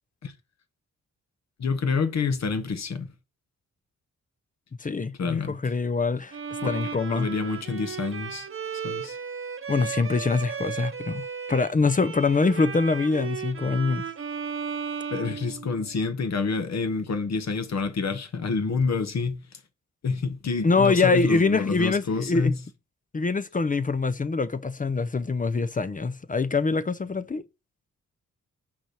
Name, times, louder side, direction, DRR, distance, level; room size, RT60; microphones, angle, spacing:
voice 1, 1.6-3.1 5.2-5.6 6.6-8.5 8.8-9.2 15.1-19.6 20.0-22.6, left 4 dB, 60° left, 1.2 m, -28 dB
voice 2, 4.8-6.4 6.6-7.3 9.7-14.0 20.6-22.5 23.1-27.4, left 4 dB, 25° left, 0.6 m, -24 dB
Bowed string instrument, 6.3-16.1, right 6 dB, 45° right, 1.0 m, -35 dB
6.1 x 4.3 x 6.3 m
cardioid pair, 70°, 31 cm